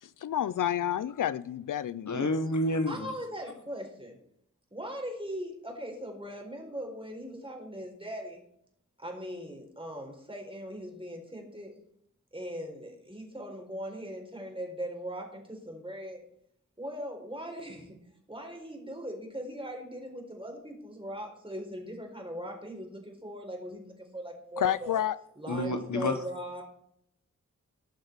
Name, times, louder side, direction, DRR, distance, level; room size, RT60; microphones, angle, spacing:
voice 1, 0.0-2.3 24.6-25.2, left 10 dB, 80° left, 0.5 m, -30 dB
voice 2, 2.1-3.1 25.5-26.2, left 1 dB, 65° left, 1.5 m, -29 dB
voice 3, 2.9-4.2 4.7-8.4 9.0-11.8 12.3-16.2 16.8-18.0 18.3-25.0 25.4-26.6, equal, 15° right, 4.4 m, -40 dB
18.5 x 6.5 x 4.7 m
cardioid pair, 55°, 31 cm